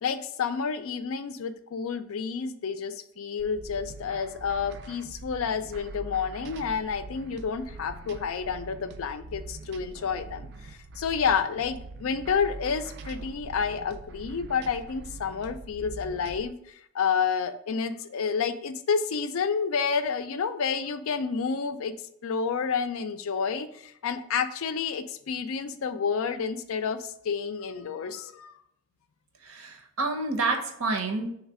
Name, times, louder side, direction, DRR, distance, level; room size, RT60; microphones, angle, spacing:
voice 1, 0.0-21.9 22.2-28.6, left 6 dB, 75° left, 10 dB, 0.4 m, -30 dB
sound 1, 3.4-16.5, right 3 dB, 55° right, 0.3 m, -43 dB
voice 2, 29.4-31.3, right 3 dB, 90° right, 4 dB, 0.8 m, -29 dB
3.2 x 3.2 x 4.7 m, 0.72 s
head